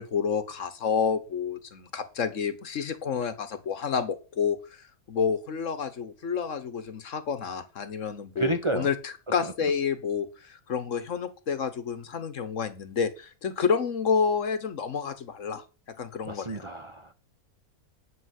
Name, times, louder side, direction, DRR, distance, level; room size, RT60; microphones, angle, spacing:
voice 1, 0.0-15.6 16.0-16.7, left 6 dB, 60° left, 1.4 m, -29 dB
voice 2, 8.4-8.9 9.4-9.5 16.3-17.1, right 2 dB, 35° right, 0.5 m, -30 dB
9.8 x 5.1 x 8.2 m
omnidirectional pair, 1.6 m